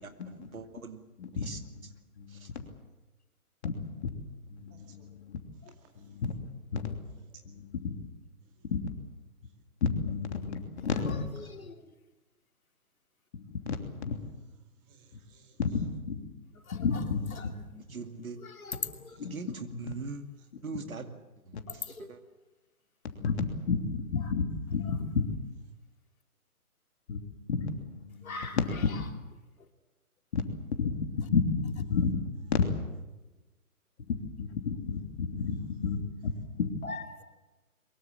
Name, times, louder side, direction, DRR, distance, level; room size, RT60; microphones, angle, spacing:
voice 1, 0.0-1.0 1.3-1.9 2.3-2.5 17.9-18.4 19.2-20.2 20.6-21.2 21.4-22.2, right 4 dB, 65° right, 7 dB, 2.5 m, -42 dB
voice 2, 3.6-4.1 4.5-5.4 6.1-6.3 6.7-7.0 7.5-7.6 7.8-7.9 8.7-8.8 9.8-11.2 13.3-14.2 15.6-15.7 16.1-16.2 16.8-17.5 19.2-19.3 19.9-20.0 23.2-25.2 27.1-27.2 27.5-28.4 30.3-30.4 30.7-32.2 32.5-32.6 34.1-36.0 36.2-36.3 36.6-36.7, left 5 dB, 45° left, 5 dB, 3.0 m, -31 dB
voice 3, 4.7-5.1 5.8-6.3 7.1-7.4 8.4-8.6 14.7-15.8 18.7-19.3 28.2-28.6, right 6 dB, 15° right, 3 dB, 2.3 m, -62 dB
voice 4, 18.4-19.2 21.7-22.0 28.2-28.6 36.8-37.2, left 4 dB, 65° left, 5 dB, 3.1 m, -40 dB
23.0 x 22.0 x 7.4 m, 1.1 s
figure-of-eight pair, 140°, 45 cm